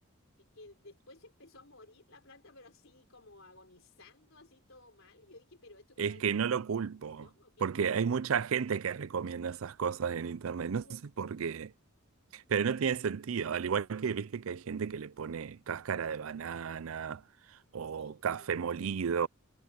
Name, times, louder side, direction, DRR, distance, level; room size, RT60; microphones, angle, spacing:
voice 1, 0.4-6.2 7.2-7.6 10.6-11.0 18.0-18.5 18.8-18.9, left 2 dB, 70° left, 4.7 m, -56 dB
voice 2, 6.0-7.3 7.6-10.9 11.2-11.7 12.3-17.2 17.7-19.3, right 6 dB, 75° right, 0.5 m, -33 dB
head